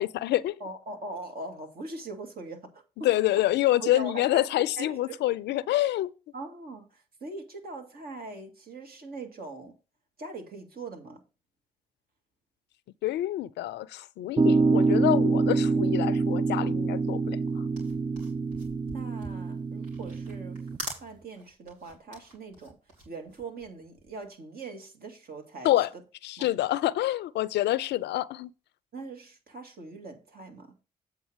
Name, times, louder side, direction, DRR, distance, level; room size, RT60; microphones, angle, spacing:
voice 1, 0.0-0.6 3.0-6.1 13.0-17.7 25.6-25.9 26.2-28.5, left 14 dB, 70° left, 0.5 m, -27 dB
voice 2, 0.6-3.1 3.8-4.4 4.8-5.2 6.3-9.8 10.2-11.2 18.9-20.7 21.0-22.8 23.1-25.7 26.4-26.6 28.9-30.8, right 3 dB, 55° right, 2.0 m, -41 dB
sound 1, 14.4-20.8, right 4 dB, 25° right, 0.5 m, -26 dB
sound 2, 17.6-24.2, right 1 dB, 85° right, 2.8 m, -44 dB
8.1 x 3.9 x 6.3 m
hypercardioid pair, 45°, 18 cm